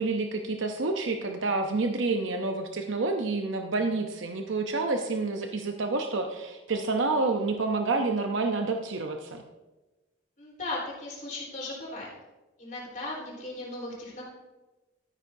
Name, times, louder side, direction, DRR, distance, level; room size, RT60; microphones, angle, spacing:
voice 1, 0.0-9.4, right 3 dB, 80° right, 4 dB, 0.7 m, -28 dB
voice 2, 10.4-12.1 12.6-14.2, left 2 dB, 40° left, -4 dB, 3.8 m, -37 dB
13.0 x 9.8 x 2.7 m, 1.1 s
head